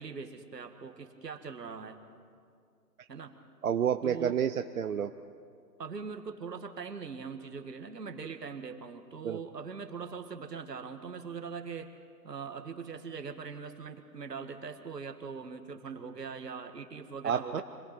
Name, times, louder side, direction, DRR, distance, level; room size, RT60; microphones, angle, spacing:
voice 1, 0.0-2.0 3.1-3.3 4.0-4.4 5.8-11.9 12.2-17.6, right 5 dB, 75° right, 6 dB, 2.0 m, -41 dB
voice 2, 3.6-5.1 9.2-9.4 17.2-17.6, right 8 dB, 60° right, 8 dB, 0.8 m, -29 dB
25.5 x 17.5 x 5.9 m, 2.3 s
figure-of-eight pair, 140°, 48 cm